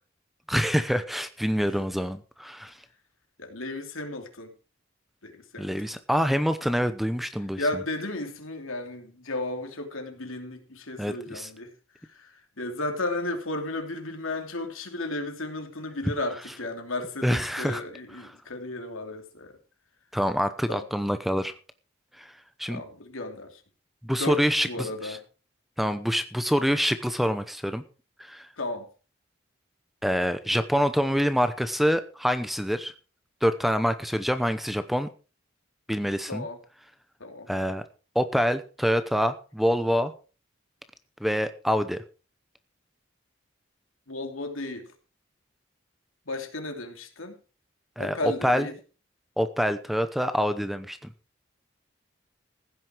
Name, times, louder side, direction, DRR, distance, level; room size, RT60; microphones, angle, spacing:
voice 1, 0.5-2.7 5.6-7.6 11.0-11.5 17.2-17.8 20.1-21.5 22.2-22.3 22.6-22.8 24.0-25.2 25.8-27.8 28.2-28.5 30.0-32.9 33.4-35.1 35.9-36.5 37.5-37.8 38.1-40.1 41.2-42.0 48.0-48.7 49.4-51.1, equal, ahead, 0.7 m, -26 dB
voice 2, 3.4-4.5 5.2-5.8 7.6-11.7 12.1-19.6 20.7-20.9 22.7-23.6 24.2-25.2 28.6-28.9 36.3-36.6 37.2-37.5 44.1-44.9 46.3-47.4 48.0-48.8, left 2 dB, 80° left, 3.0 m, -34 dB
15.5 x 9.7 x 4.5 m
head